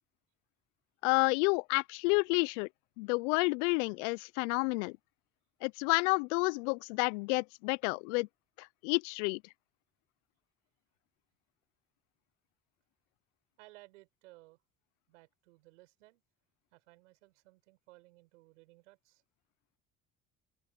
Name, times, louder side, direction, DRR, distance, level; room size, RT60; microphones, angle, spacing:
voice 1, 1.0-2.7 3.0-5.0 5.6-8.3 8.6-9.4, left 29 dB, 75° left, 0.6 m, -30 dB
voice 2, 13.6-14.6 15.1-16.2 16.7-19.2, right 21 dB, 85° right, 7.7 m, -59 dB
open air
hypercardioid pair, 60°, 36 cm